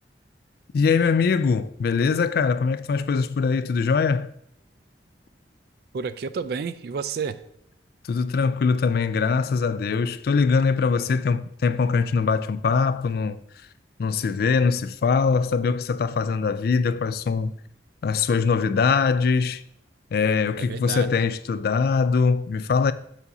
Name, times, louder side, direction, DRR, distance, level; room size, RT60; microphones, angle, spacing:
voice 1, 0.7-4.3 8.1-13.4 14.0-17.5 18.0-19.6 20.1-22.9, left 5 dB, 55° left, 0.3 m, -22 dB
voice 2, 5.9-7.4 20.6-21.3, right 5 dB, 60° right, 0.3 m, -31 dB
7.1 x 2.7 x 5.4 m
head